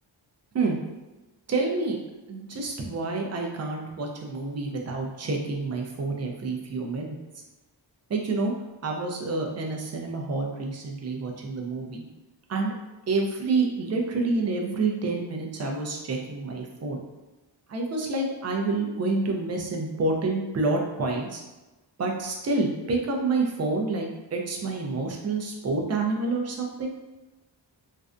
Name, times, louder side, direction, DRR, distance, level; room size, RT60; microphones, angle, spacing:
voice 1, 1.5-2.0 2.3-7.2 8.1-8.5 8.8-12.0 12.5-12.7 13.1-17.0 17.7-21.4 22.0-26.9, right 3 dB, 35° right, 1 dB, 0.4 m, -28 dB
2.5 x 2.1 x 2.4 m, 1.1 s
wide cardioid pair, 85°, 46 cm